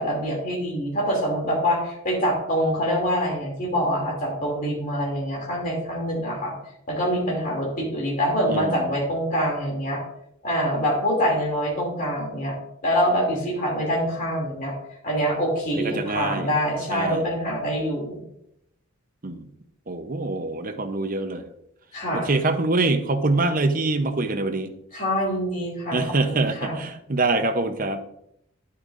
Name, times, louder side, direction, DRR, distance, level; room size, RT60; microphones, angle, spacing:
voice 1, 0.0-6.5 6.9-10.0 10.4-12.5 12.8-14.7 15.0-18.2 21.9-22.3 24.9-26.8, equal, 40° left, -2 dB, 2.7 m, -25 dB
voice 2, 8.5-9.0 15.7-16.5 16.9-17.2 19.2-19.4 19.9-21.4 22.1-24.7 25.9-28.0, right 2 dB, 40° right, 8 dB, 0.7 m, -25 dB
10.0 x 8.5 x 2.5 m, 0.75 s
head